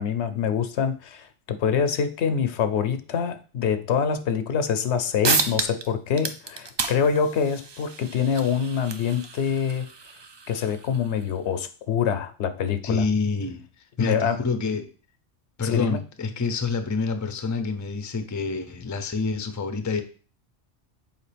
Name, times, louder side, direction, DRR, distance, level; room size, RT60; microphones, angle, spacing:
voice 1, 0.0-9.9 10.5-13.0 14.0-14.4 15.6-16.0, left 7 dB, 75° left, 11 dB, 0.9 m, -25 dB
sound 1, 4.9-5.0 5.2-5.9 6.1-11.3, right 4 dB, 40° right, 0.4 m, -31 dB
voice 2, 12.8-13.6 14.0-14.9 15.6-20.0, left 4 dB, 25° left, 9 dB, 0.4 m, -27 dB
7.1 x 4.6 x 3.3 m, 0.38 s
omnidirectional pair, 1.2 m